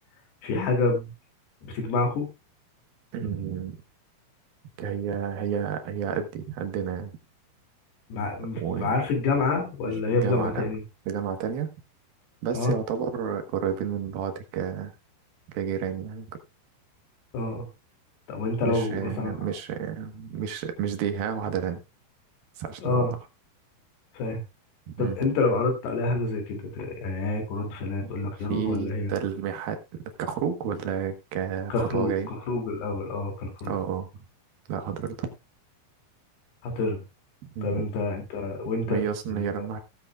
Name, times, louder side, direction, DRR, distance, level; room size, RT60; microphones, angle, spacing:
voice 1, 0.4-1.1 1.6-2.3 8.1-10.8 12.5-12.8 17.3-17.7 18.3-19.4 22.8-23.1 24.1-24.4 25.0-29.1 31.7-32.1 32.5-33.7 36.6-37.0 37.6-39.0 39.3-39.5, left 3 dB, 90° left, 3 dB, 4.7 m, -27 dB
voice 2, 3.1-3.8 4.8-7.1 8.6-9.0 9.8-10.6 11.1-11.7 12.4-14.9 15.5-16.3 18.6-21.8 22.6-23.1 24.9-25.3 28.0-28.1 28.4-32.3 33.6-34.2 34.7-35.3 37.6-37.8 38.9-39.8, right 8 dB, 70° right, 7 dB, 3.0 m, -31 dB
17.5 x 8.3 x 2.3 m, 0.24 s
omnidirectional pair, 4.6 m